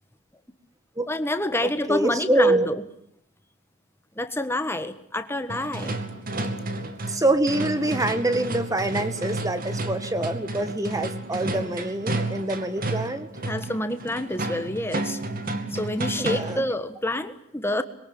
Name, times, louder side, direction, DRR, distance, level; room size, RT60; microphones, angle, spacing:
voice 1, 1.1-2.8 4.2-5.9 13.4-15.2 15.7-17.8, left 1 dB, 10° left, 9 dB, 1.6 m, -28 dB
voice 2, 1.6-2.7 7.1-13.3 16.2-16.6, right 1 dB, 15° right, 11 dB, 1.7 m, -25 dB
sound 1, 5.5-16.7, right 2 dB, 45° right, 2.4 m, -31 dB
25.5 x 22.5 x 8.8 m, 0.73 s
head